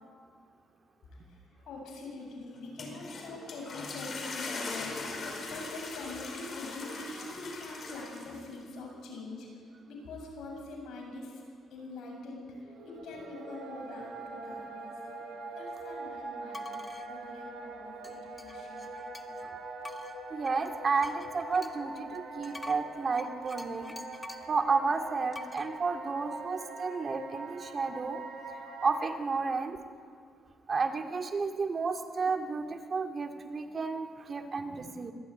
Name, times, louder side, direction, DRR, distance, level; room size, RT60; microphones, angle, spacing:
voice 1, 1.1-9.6 9.9-11.4 11.7-15.0 15.5-18.9, left 2 dB, 75° left, 1 dB, 7.7 m, -44 dB
sound 1, 2.6-8.6, left 3 dB, 50° left, 5.2 m, -40 dB
sound 2, 12.6-29.1, right 3 dB, 85° right, 7.8 m, -43 dB
sound 3, 16.5-17.1 18.0-19.5 19.8-24.6 25.3-25.7, left 2 dB, 20° left, 1.8 m, -47 dB
voice 2, 20.3-23.9 24.5-28.2 28.8-29.8 30.7-35.1, right 4 dB, 40° right, 4 dB, 2.3 m, -32 dB
25.0 x 16.5 x 9.7 m, 2.1 s
cardioid pair, 90°, 0 cm